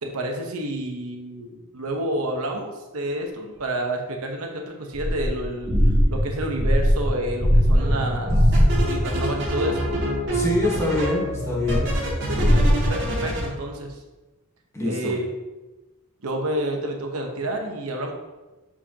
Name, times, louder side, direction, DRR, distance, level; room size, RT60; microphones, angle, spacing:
voice 1, 0.0-5.7 6.1-8.4 8.9-9.9 12.5-14.0 14.8-15.3 16.2-18.1, right 1 dB, 90° right, 2 dB, 1.0 m, -29 dB
sound 1, 4.9-9.1 11.6-12.9, equal, 25° right, 1.6 m, -20 dB
sound 2, 7.8-8.1 8.5-13.5, right 1 dB, 55° right, 1.9 m, -27 dB
voice 2, 10.3-11.9 14.7-15.2, left 2 dB, 15° left, -3 dB, 1.2 m, -25 dB
6.9 x 4.9 x 2.9 m, 1.1 s
head